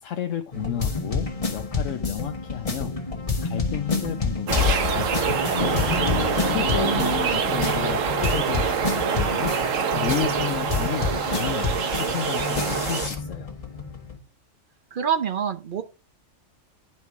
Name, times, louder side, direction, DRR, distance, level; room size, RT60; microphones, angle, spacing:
voice 1, 0.0-3.0 3.4-5.6 6.4-9.5 9.9-13.5, left 10 dB, 80° left, 1.0 m, -32 dB
sound 1, 0.5-14.2, left 4 dB, 30° left, 1.2 m, -28 dB
sound 2, 4.5-13.1, right 7 dB, 80° right, 1.2 m, -25 dB
sound 3, 5.6-8.5, left 5 dB, 50° left, 1.2 m, -32 dB
voice 2, 6.8-7.4 14.9-15.8, right 8 dB, 50° right, 0.8 m, -27 dB
9.5 x 4.4 x 4.7 m
omnidirectional pair, 1.3 m